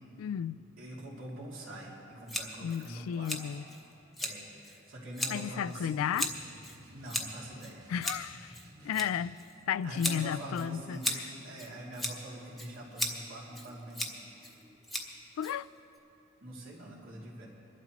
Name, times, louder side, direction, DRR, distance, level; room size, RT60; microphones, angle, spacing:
voice 1, 0.2-0.6 2.6-3.6 5.3-6.3 7.9-8.5 8.8-9.4 9.7-11.3 15.4-15.7, left 8 dB, 90° left, 0.3 m, -33 dB
voice 2, 0.8-3.4 4.2-6.3 6.9-7.9 8.8-8.9 9.8-14.1 16.4-17.5, right 1 dB, 75° right, 2.9 m, -44 dB
Scissors, 2.3-16.0, left 1 dB, ahead, 0.9 m, -39 dB
sound 1, 6.0-9.4, equal, 50° right, 3.4 m, -55 dB
24.5 x 12.0 x 3.1 m
head